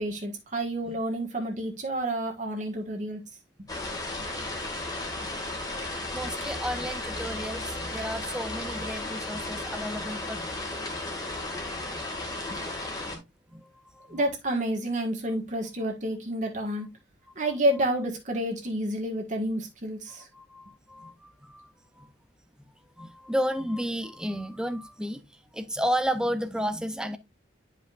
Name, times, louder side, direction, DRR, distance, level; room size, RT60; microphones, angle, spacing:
voice 1, 0.0-3.2 14.1-16.9 17.3-20.3, right 1 dB, 40° right, 1.6 m, -29 dB
sound 1, 3.7-13.2, left 2 dB, 20° left, 1.8 m, -34 dB
voice 2, 6.1-11.0 11.5-11.6 11.9-12.0 12.5-12.6 13.1-13.2 13.5-13.7 13.9-14.2 16.7-16.8 20.3-21.7 22.0-22.1 23.0-25.2 25.5-27.2, equal, 5° right, 0.6 m, -33 dB
11.0 x 5.1 x 2.4 m
head